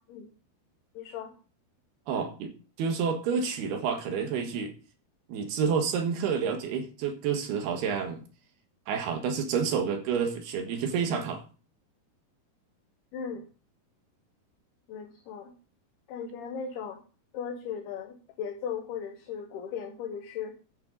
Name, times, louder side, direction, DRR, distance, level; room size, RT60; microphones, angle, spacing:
voice 1, 0.9-1.3 13.1-13.4 14.9-15.5 16.1-17.0 17.3-20.5, left 7 dB, 75° left, 3.1 m, -37 dB
voice 2, 2.1-4.7 5.3-8.2 8.9-11.4, right 6 dB, 75° right, 3.3 m, -29 dB
11.0 x 9.1 x 3.8 m
omnidirectional pair, 4.7 m